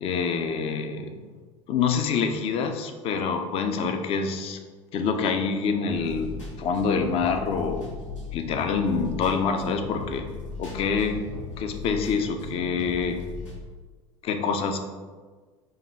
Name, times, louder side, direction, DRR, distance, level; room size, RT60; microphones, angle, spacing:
voice 1, 0.0-1.1 1.7-4.6 4.9-7.9 8.3-10.3 10.6-11.2 11.6-13.2 14.2-14.8, left 5 dB, 35° left, 6 dB, 0.5 m, -26 dB
sound 1, 5.9-13.6, left 4 dB, 75° left, 1.1 m, -38 dB
5.4 x 2.3 x 3.3 m, 1.4 s
figure-of-eight pair, 70°, 16 cm